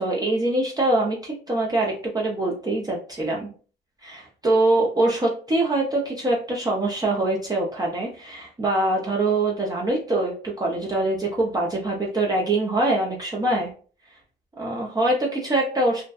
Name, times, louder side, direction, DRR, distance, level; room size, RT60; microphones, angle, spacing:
voice 1, 0.0-3.5 4.0-13.7 14.6-16.0, right 2 dB, 20° right, -3 dB, 0.6 m, -24 dB
2.6 x 2.1 x 2.3 m, 0.39 s
cardioid pair, 90°, 20 cm